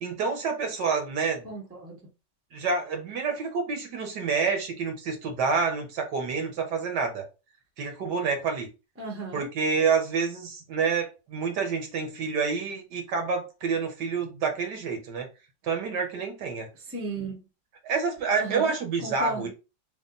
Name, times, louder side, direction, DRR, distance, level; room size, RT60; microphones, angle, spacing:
voice 1, 0.0-1.4 2.5-7.3 7.8-8.7 9.3-15.3 15.6-16.7 17.8-19.5, right 5 dB, 70° right, 1.5 m, -28 dB
voice 2, 1.4-2.0 9.0-9.5 16.9-17.4 18.4-18.7 19.0-19.5, right 2 dB, 10° right, 0.8 m, -35 dB
3.6 x 2.4 x 3.8 m
omnidirectional pair, 1.9 m